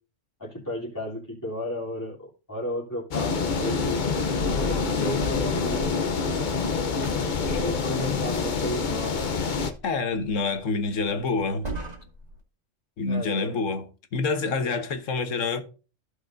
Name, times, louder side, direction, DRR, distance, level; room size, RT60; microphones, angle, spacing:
voice 1, 0.4-4.0 4.6-6.0 7.4-9.4 13.0-13.6 14.6-14.7, left 1 dB, 15° left, 3.2 m, -33 dB
sound 1, 3.1-9.7, left 4 dB, 45° left, 0.8 m, -26 dB
sound 2, 4.3-12.4, right 1 dB, 30° right, 2.4 m, -42 dB
voice 2, 9.8-11.7 13.0-13.8 14.1-15.6, left 4 dB, 85° left, 1.4 m, -27 dB
15.5 x 5.2 x 2.6 m
omnidirectional pair, 1.3 m